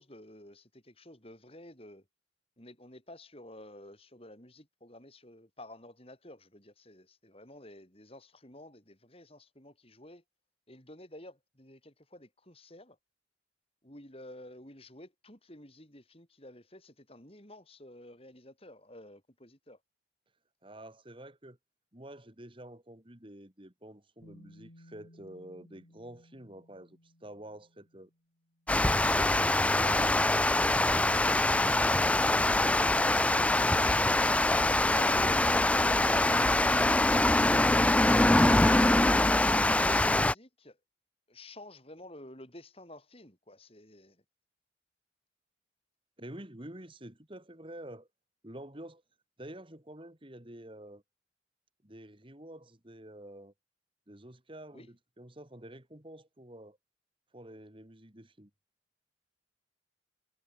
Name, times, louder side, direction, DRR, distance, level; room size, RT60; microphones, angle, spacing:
voice 1, 0.0-2.0 2.6-10.2 10.7-13.0 13.8-19.8 29.1-29.4 34.9-36.4 39.5-40.8 41.3-44.2 54.7-54.9, left 1 dB, 30° left, 6.4 m, -51 dB
voice 2, 20.6-21.6 21.9-28.1 28.7-29.4 29.7-30.3 46.2-48.1 48.4-49.0 49.4-51.0 51.8-53.5 54.1-56.8 57.3-58.5, right 1 dB, 25° right, 2.3 m, -48 dB
Bass guitar, 24.2-30.3, equal, 80° left, 6.8 m, -60 dB
Water, 28.7-40.3, left 2 dB, 5° left, 0.3 m, -24 dB
head